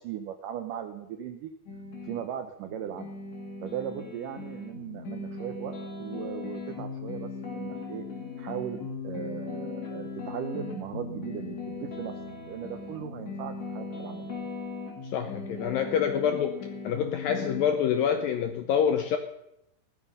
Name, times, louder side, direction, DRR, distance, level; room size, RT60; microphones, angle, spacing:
voice 1, 0.0-1.5 2.1-3.1 3.6-8.0 8.4-8.8 9.0-12.2 12.5-14.3, right 9 dB, 85° right, 7 dB, 1.9 m, -38 dB
sound 1, 1.7-2.2 2.7-17.7, left 4 dB, 45° left, 3.4 m, -38 dB
voice 2, 15.0-16.6 16.8-19.2, left 8 dB, 80° left, 8 dB, 2.1 m, -26 dB
16.5 x 13.0 x 5.6 m, 0.83 s
omnidirectional pair, 5.0 m